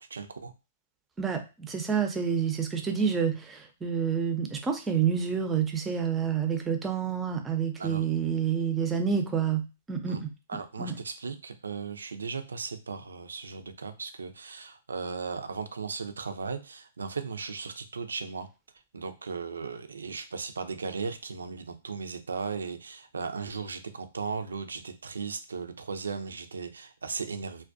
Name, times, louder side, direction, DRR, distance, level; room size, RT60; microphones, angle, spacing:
voice 1, 0.1-0.5 7.8-8.0 10.1-10.2 10.5-18.5 18.9-27.6, right 5 dB, 80° right, 9 dB, 0.4 m, -36 dB
voice 2, 1.2-10.3 10.8-10.9, right 7 dB, 15° right, 5 dB, 0.5 m, -28 dB
2.3 x 2.2 x 2.5 m, 0.29 s
hypercardioid pair, 120°, 0 cm